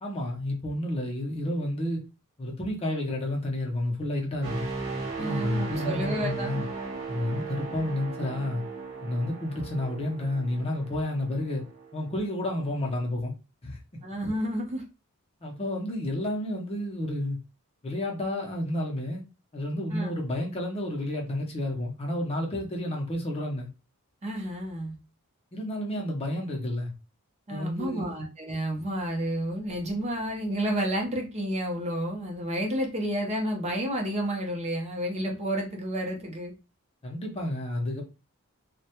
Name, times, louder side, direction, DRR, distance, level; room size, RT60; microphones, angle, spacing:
voice 1, 0.0-2.0 2.4-4.6 5.2-6.7 7.1-8.6 9.0-11.6 11.9-13.3 13.6-14.0 15.4-17.4 17.8-19.2 19.5-23.7 25.5-26.9 27.5-28.2 37.0-38.0, left 1 dB, 25° left, 0.6 m, -30 dB
sound 1, 4.4-12.2 12.7-12.9, right 4 dB, 45° right, 1.0 m, -37 dB
voice 2, 5.2-6.6 14.0-14.8 19.9-20.1 24.2-25.0 27.5-36.5, equal, 30° right, 0.6 m, -30 dB
2.2 x 2.1 x 2.8 m
head